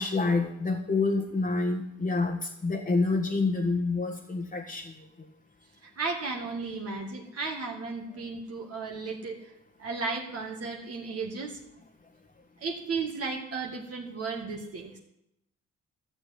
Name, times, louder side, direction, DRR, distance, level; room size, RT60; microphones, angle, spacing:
voice 1, 0.0-4.9, left 3 dB, 25° left, 0 dB, 1.6 m, -27 dB
voice 2, 5.8-9.4 9.8-11.6 12.6-15.0, right 4 dB, 50° right, 0 dB, 2.2 m, -34 dB
14.0 x 7.2 x 8.5 m, 0.82 s
cardioid pair, 90°, 30 cm